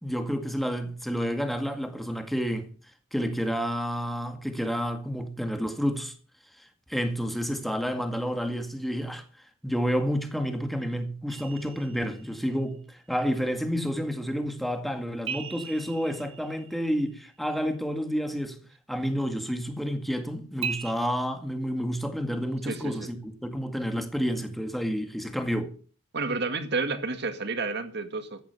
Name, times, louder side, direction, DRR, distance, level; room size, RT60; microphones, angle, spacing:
voice 1, 0.0-2.7 3.1-6.2 6.9-9.2 9.6-18.6 18.9-25.7, equal, ahead, 2.0 m, -30 dB
sound 1, 11.3-12.6 15.3-17.3 20.6-20.9, right 7 dB, 25° right, 2.4 m, -38 dB
voice 2, 22.7-23.1 26.1-28.4, right 3 dB, 55° right, 2.1 m, -30 dB
14.5 x 10.5 x 6.8 m
head